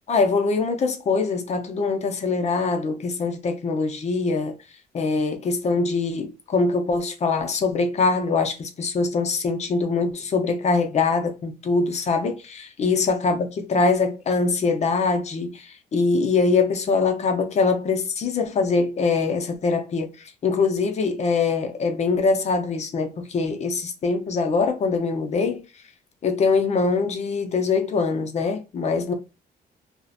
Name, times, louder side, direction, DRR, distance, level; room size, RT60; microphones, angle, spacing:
voice 1, 0.1-4.6 4.9-25.7 26.2-29.1, left 4 dB, 45° left, 0.5 m, -23 dB
2.4 x 2.1 x 2.5 m
cardioid pair, 125°, 16 cm